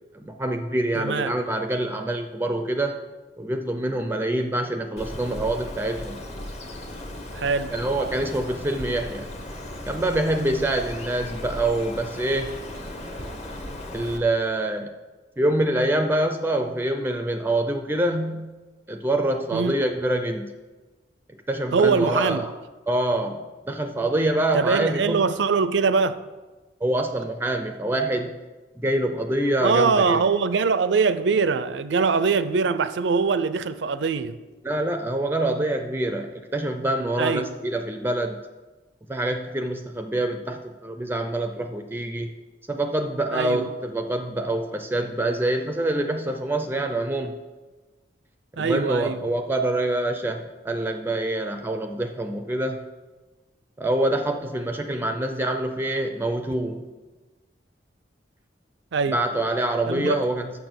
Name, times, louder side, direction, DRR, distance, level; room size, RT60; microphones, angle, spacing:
voice 1, 0.1-3.0 3.4-6.2 7.7-9.3 9.9-12.6 13.9-14.9 15.4-18.5 18.9-20.5 21.5-22.5 22.9-25.3 26.8-28.4 28.8-30.2 34.6-38.4 39.1-42.3 42.7-47.4 48.6-52.8 53.8-56.9 59.1-60.5, right 1 dB, 10° right, 0.4 m, -25 dB
voice 2, 1.0-1.3 7.3-7.7 19.5-19.8 21.7-22.4 24.5-26.2 29.6-34.4 37.2-37.5 43.3-43.7 48.6-49.2 58.9-59.2 59.9-60.2, right 5 dB, 80° right, 0.5 m, -22 dB
Bird, 5.0-14.2, left 1 dB, 40° left, 0.9 m, -36 dB
6.8 x 6.0 x 6.9 m
head